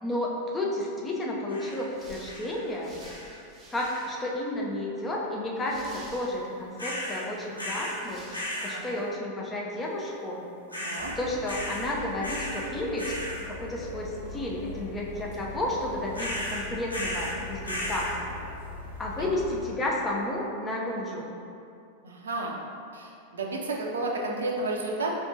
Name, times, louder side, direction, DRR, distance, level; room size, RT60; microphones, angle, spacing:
voice 1, 0.0-3.0 3.7-8.2 8.6-10.4 11.2-13.1 13.5-18.4 19.0-21.3, left 1 dB, 15° left, -3 dB, 0.7 m, -32 dB
sound 1, 1.5-1.9 2.2-2.6 3.0-3.4 3.8-4.2 6.8-7.2 7.6-8.0 8.3-8.8 10.7-11.2 11.5-11.9 12.2-12.7 13.0-13.4 16.1-17.4 17.6-18.1, equal, 80° left, 0.7 m, -35 dB
sound 2, 1.6-4.4 4.7-4.8 5.6-6.8 7.5-7.6 8.0-9.1, right 1 dB, 20° right, 1.0 m, -50 dB
voice 2, 8.7-9.0 10.8-11.1 22.0-22.6 22.9-25.1, right 2 dB, 70° right, -1 dB, 0.5 m, -32 dB
sound 3, 11.0-19.7, left 2 dB, 60° left, 1.2 m, -41 dB
4.4 x 3.6 x 2.8 m, 2.6 s
figure-of-eight pair, 90°, 0 cm